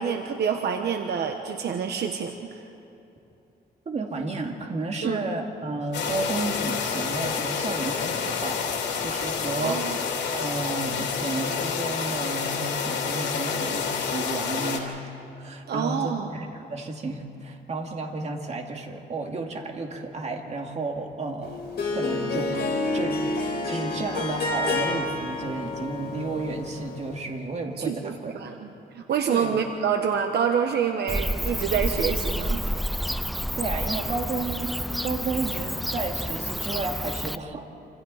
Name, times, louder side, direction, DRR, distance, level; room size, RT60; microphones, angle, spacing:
voice 1, 0.0-2.6 5.0-5.2 9.6-9.9 15.7-16.3 27.8-32.6, right 7 dB, 70° right, 5 dB, 1.2 m, -27 dB
voice 2, 3.9-8.7 9.0-10.0 10.3-15.0 15.4-21.6 21.9-28.4 29.3-29.6 33.6-34.7 35.0-37.7, right 3 dB, 40° right, 2 dB, 2.4 m, -32 dB
sound 1, 5.9-14.8, left 6 dB, 90° left, 3.0 m, -28 dB
Harp, 21.4-27.2, left 2 dB, 65° left, 3.8 m, -29 dB
Bird / Cricket, 31.1-37.4, equal, ahead, 0.4 m, -29 dB
28.0 x 26.5 x 4.2 m, 2.8 s
cardioid pair, 125°, 18 cm